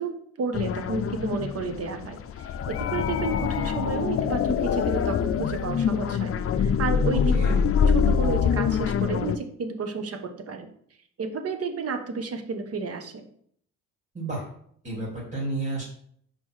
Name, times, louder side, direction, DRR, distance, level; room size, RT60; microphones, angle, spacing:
voice 1, 0.0-6.3 6.6-7.3 7.9-10.7 11.2-13.2, right 4 dB, 50° right, 7 dB, 1.2 m, -31 dB
sound 1, 0.5-9.4, left 7 dB, 50° left, 0.6 m, -25 dB
voice 2, 14.1-14.5 14.8-15.8, right 2 dB, 35° right, -4 dB, 3.3 m, -31 dB
5.7 x 5.0 x 4.8 m, 0.64 s
cardioid pair, 90°, 30 cm